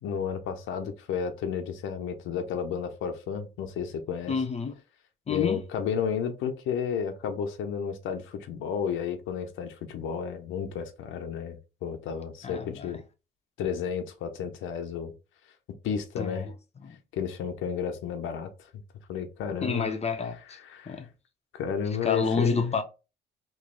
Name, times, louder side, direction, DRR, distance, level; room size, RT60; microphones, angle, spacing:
voice 1, 0.0-4.3 5.3-13.0 13.6-15.1 15.8-16.5 17.1-18.5 19.1-19.9 20.6-21.0 21.5-22.8, left 7 dB, 90° left, 0.7 m, -32 dB
voice 2, 4.3-4.7 5.3-5.6 12.4-13.0 16.2-16.5 16.8-17.0 19.6-20.6 20.9-21.0 22.0-22.8, left 5 dB, 35° left, 0.6 m, -29 dB
3.1 x 2.6 x 3.7 m
cardioid pair, 90°, 20 cm